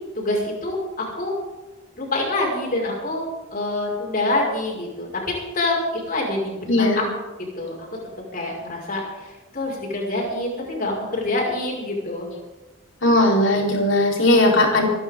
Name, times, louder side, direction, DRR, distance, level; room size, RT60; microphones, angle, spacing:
voice 1, 0.2-1.4 2.0-3.2 3.5-5.8 6.1-7.1 7.6-7.7 8.3-12.3, left 2 dB, 45° left, -3 dB, 5.5 m, -26 dB
voice 2, 6.7-7.0 13.0-14.9, left 1 dB, 65° left, -1 dB, 4.0 m, -18 dB
26.5 x 11.5 x 3.8 m, 1.1 s
head